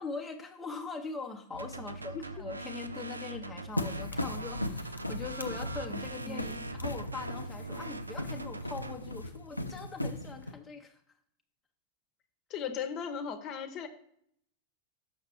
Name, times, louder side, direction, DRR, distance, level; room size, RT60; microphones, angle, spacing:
voice 1, 0.0-11.0, left 4 dB, 10° left, 1 dB, 0.6 m, -42 dB
sound 1, 1.5-9.0, right 2 dB, 80° right, 0.3 m, -42 dB
sound 2, 3.8-10.5, left 1 dB, 85° left, 0.4 m, -38 dB
voice 2, 6.2-6.6 12.5-13.9, left 6 dB, 40° left, 8 dB, 0.8 m, -37 dB
6.5 x 5.9 x 4.3 m, 0.69 s
figure-of-eight pair, 90°, 0 cm